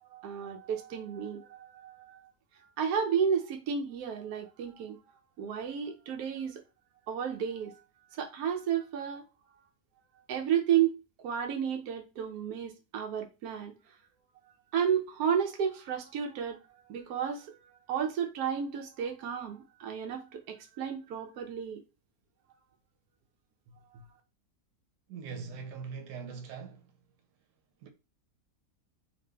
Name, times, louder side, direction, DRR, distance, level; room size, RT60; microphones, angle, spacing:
voice 1, 0.1-2.3 2.8-5.0 5.4-6.6 7.1-7.8 8.1-9.2 10.3-13.8 14.7-16.6 16.9-21.8, right 8 dB, 70° right, 1.1 m, -32 dB
voice 2, 25.1-26.9 27.8-27.9, right 5 dB, 90° right, 1.2 m, -41 dB
3.0 x 2.5 x 3.3 m
omnidirectional pair, 1.8 m